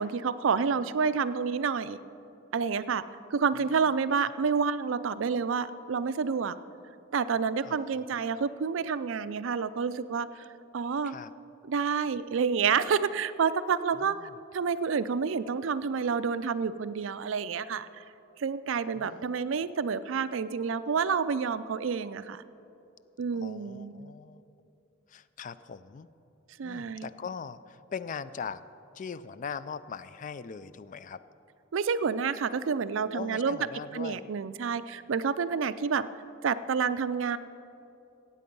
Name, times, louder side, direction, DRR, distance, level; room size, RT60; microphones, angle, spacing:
voice 1, 0.0-2.0 2.5-3.0 3.3-6.6 7.1-10.4 10.7-11.1 11.6-17.9 18.4-22.4 23.2-24.1 26.6-27.0 31.7-33.6 33.9-36.1 36.4-37.4, right 6 dB, 85° right, 14 dB, 0.4 m, -29 dB
voice 2, 0.8-1.2 7.6-8.1 11.0-11.3 13.9-14.3 19.0-19.4 23.3-24.4 25.1-26.1 26.6-28.6 28.9-31.2 33.1-34.3, left 6 dB, 40° left, 15 dB, 0.3 m, -41 dB
15.5 x 8.4 x 5.3 m, 2.7 s
head